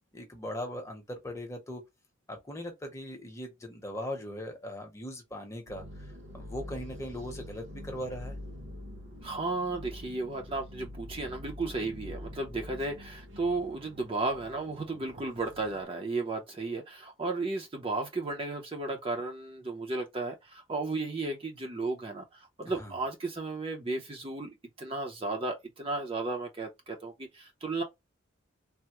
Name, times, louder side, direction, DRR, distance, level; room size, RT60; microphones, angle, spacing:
voice 1, 0.1-1.8 2.3-8.4 12.8-12.9 22.7-23.0, left 1 dB, 15° left, 0.8 m, -40 dB
sound 1, 5.7-15.8, left 1 dB, 60° right, 1.0 m, -45 dB
voice 2, 9.2-24.5 24.8-27.8, right 3 dB, 25° right, 0.5 m, -34 dB
3.4 x 2.0 x 2.9 m
head